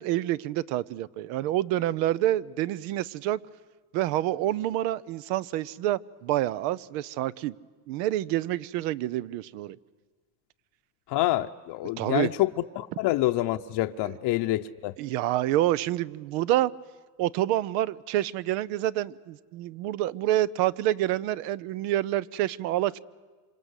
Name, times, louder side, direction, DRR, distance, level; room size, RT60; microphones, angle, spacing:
voice 1, 0.0-3.4 3.9-7.5 7.9-9.8 12.0-12.3 14.0-14.1 15.0-16.7 17.2-23.0, right 14 dB, 80° right, 0.8 m, -27 dB
voice 2, 11.1-12.5 12.8-14.9, left 16 dB, 60° left, 0.8 m, -27 dB
26.5 x 26.5 x 8.2 m
supercardioid pair, 105°, 47 cm